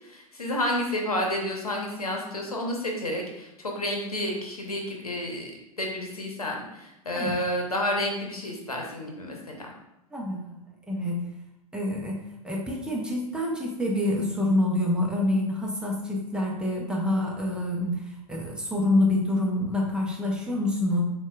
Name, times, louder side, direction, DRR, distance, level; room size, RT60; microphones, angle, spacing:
voice 1, 0.0-5.5 5.8-9.7, left 1 dB, 80° left, 0 dB, 0.9 m, -30 dB
voice 2, 10.1-10.6 10.9-11.2 11.7-21.0, left 1 dB, 5° right, -3 dB, 0.6 m, -27 dB
7.0 x 2.3 x 2.3 m, 0.89 s
figure-of-eight pair, 90°, 19 cm